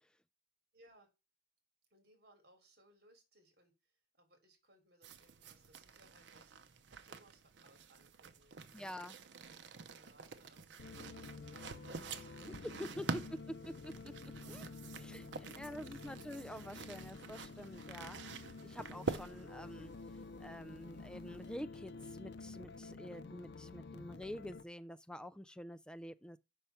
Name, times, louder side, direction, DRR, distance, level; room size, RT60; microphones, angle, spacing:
voice 1, 0.7-1.1 1.9-6.6 7.0-8.9 9.5-13.2 15.1-16.2, right 1 dB, 60° right, 3.0 m, -68 dB
sound 1, 5.0-21.6, right 4 dB, 90° right, 0.7 m, -48 dB
voice 2, 8.7-9.1 12.5-12.6 12.8-13.1 13.7-14.1 14.5-14.7 15.0-19.9 20.4-26.4, left 1 dB, 5° left, 0.3 m, -48 dB
sound 2, 10.8-24.6, left 3 dB, 65° left, 0.6 m, -50 dB
5.6 x 4.7 x 5.6 m
head